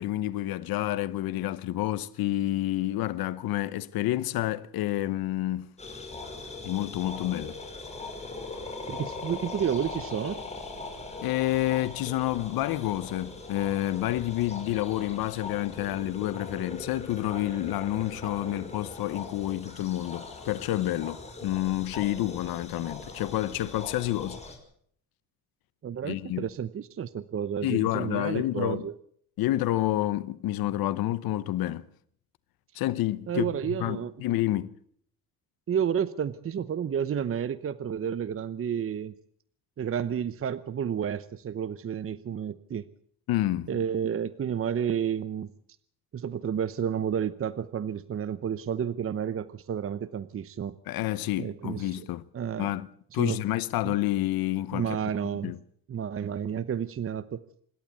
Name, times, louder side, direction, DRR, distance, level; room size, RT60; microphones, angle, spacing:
voice 1, 0.0-5.7 6.6-7.6 11.2-24.4 26.0-26.5 27.6-28.8 29.4-31.9 32.7-34.7 43.3-43.7 50.9-52.2 52.6-52.9 53.1-55.0 55.4-55.6, left 15 dB, 85° left, 1.0 m, -29 dB
sound 1, 5.8-24.6, left 3 dB, 20° left, 5.6 m, -41 dB
voice 2, 8.9-10.4 25.8-28.9 33.3-34.1 35.7-39.1 39.8-42.9 43.7-45.5 46.1-50.8 51.4-52.1 52.3-52.7 53.2-53.4 53.8-53.9 54.7-55.5 55.9-57.4, right 8 dB, 40° right, 0.8 m, -31 dB
26.5 x 12.0 x 8.3 m
cardioid pair, 105°, 35 cm